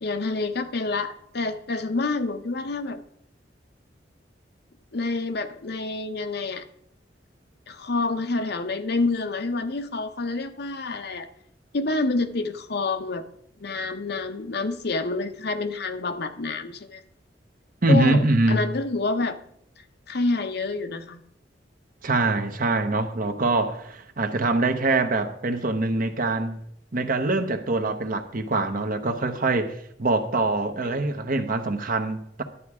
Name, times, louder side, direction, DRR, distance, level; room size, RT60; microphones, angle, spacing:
voice 1, 0.0-3.0 4.9-6.6 7.7-11.3 11.7-13.2 13.6-17.0 17.9-19.4 20.1-21.2 30.8-30.9, left 3 dB, 60° left, 0.8 m, -28 dB
voice 2, 17.8-18.6 22.0-26.6 26.9-32.4, right 2 dB, 50° right, 1.0 m, -24 dB
11.0 x 8.4 x 4.8 m
head